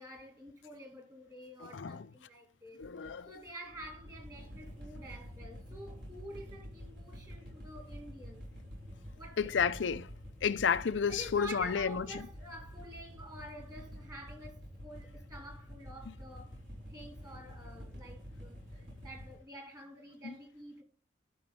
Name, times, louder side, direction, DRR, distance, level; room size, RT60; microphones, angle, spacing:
voice 1, 0.0-2.9 3.3-8.5 9.2-9.6 11.1-16.6 16.9-20.8, right 1 dB, 20° right, 2.5 m, -49 dB
voice 2, 1.7-2.0 2.8-3.3 9.4-10.1 10.4-12.0 20.2-20.3, left 6 dB, 75° left, 0.5 m, -31 dB
sound 1, 2.8-19.4, equal, 60° right, 5.4 m, -48 dB
12.5 x 5.9 x 3.7 m
head